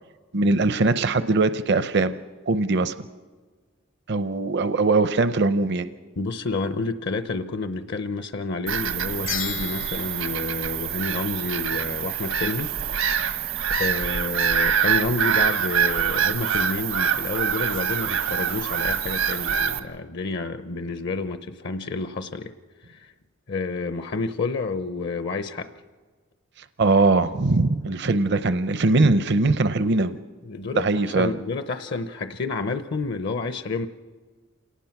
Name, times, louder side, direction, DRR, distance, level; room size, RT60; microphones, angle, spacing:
voice 1, 0.3-2.2 2.5-2.9 4.1-5.9 26.8-30.2 30.7-31.3, right 3 dB, 60° right, 12 dB, 0.6 m, -21 dB
voice 2, 6.2-12.7 13.7-22.5 22.9-23.1 23.5-25.7 30.4-33.9, left 3 dB, 55° left, 10 dB, 0.7 m, -29 dB
Bird vocalization bird call bird song / Gull seagull, 8.7-19.8, right 8 dB, 90° right, 1.5 m, -25 dB
sound 1, 9.3-11.7, left 10 dB, 75° left, 1.5 m, -36 dB
27.5 x 18.5 x 5.9 m, 1.4 s
head